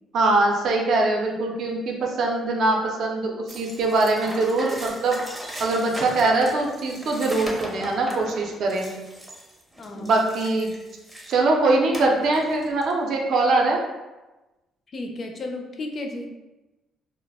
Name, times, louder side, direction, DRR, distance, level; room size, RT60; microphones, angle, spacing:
voice 1, 0.1-5.2 5.6-8.9 9.9-10.7 11.3-13.8, right 2 dB, 65° right, 0 dB, 0.5 m, -22 dB
sound 1, 3.5-11.4 11.9-12.9, right 1 dB, 10° right, 0.5 m, -38 dB
voice 2, 9.8-10.3 14.9-16.3, left 2 dB, 40° left, 3 dB, 0.4 m, -33 dB
2.3 x 2.0 x 3.3 m, 1.1 s
cardioid pair, 100°, 0 cm